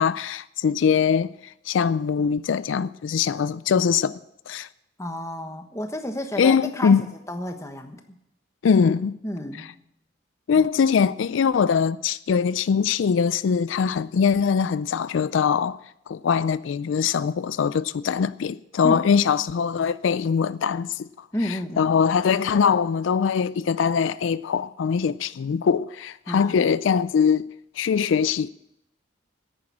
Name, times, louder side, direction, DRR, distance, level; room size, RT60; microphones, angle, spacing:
voice 1, 0.0-1.3 1.7-4.1 4.5-4.7 6.4-7.0 8.6-9.1 10.5-15.8 16.1-21.1 21.8-27.4 27.8-28.5, left 6 dB, 85° left, 0.4 m, -22 dB
voice 2, 5.0-7.0 7.3-8.0 9.2-9.7 10.5-10.7 18.8-19.1 21.3-22.0 26.3-26.7, left 1 dB, 15° left, 1.2 m, -31 dB
10.5 x 8.9 x 8.5 m
head